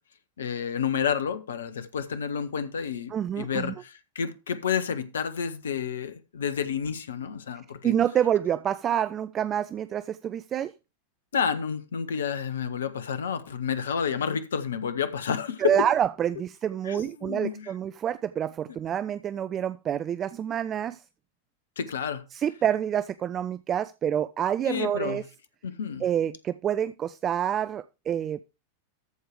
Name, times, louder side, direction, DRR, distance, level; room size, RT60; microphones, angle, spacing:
voice 1, 0.4-7.9 11.3-15.8 16.8-17.7 21.8-22.2 24.6-25.2 25.6-26.0, left 7 dB, 65° left, 1.0 m, -30 dB
voice 2, 3.1-3.7 7.8-10.7 15.6-21.0 22.3-25.2 26.0-28.4, right 9 dB, 25° right, 0.4 m, -27 dB
13.5 x 4.8 x 4.9 m
figure-of-eight pair, 90°, 0 cm